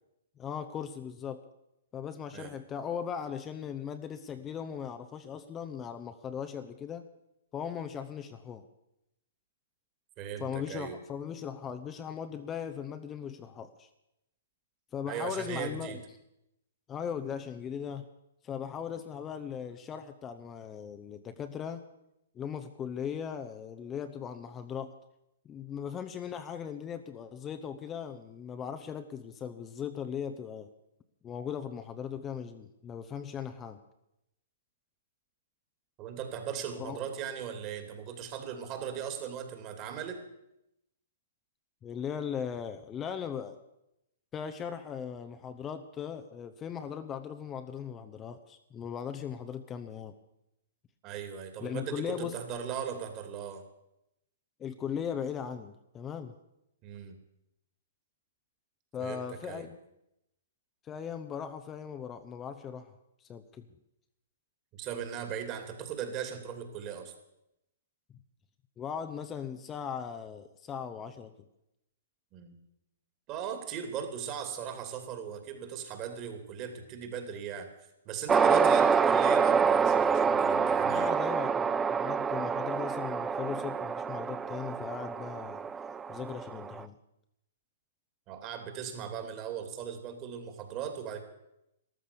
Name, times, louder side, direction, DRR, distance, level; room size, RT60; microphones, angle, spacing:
voice 1, 0.4-1.4 1.9-7.1 7.5-8.6 10.4-13.9 14.9-16.0 16.9-18.1 18.4-21.8 22.3-24.9 25.4-30.7 31.2-33.8 36.8-37.0 41.8-43.6 44.3-50.1 51.6-52.3 54.6-56.3 58.9-59.8 60.8-62.9 63.2-63.7 68.8-71.3 78.5-78.9 80.8-85.7 86.1-87.0, left 7 dB, 20° left, 9 dB, 0.9 m, -38 dB
voice 2, 10.2-11.0 15.1-16.0 36.0-40.2 51.0-53.6 56.8-57.2 59.0-59.7 64.8-67.1 72.3-72.6 73.3-77.7 78.0-81.1 88.3-91.2, right 8 dB, 35° right, 6 dB, 2.8 m, -38 dB
sound 1, 78.3-86.8, right 6 dB, 15° right, 0.5 m, -27 dB
13.5 x 12.5 x 6.9 m, 0.85 s
hypercardioid pair, 135°, 0 cm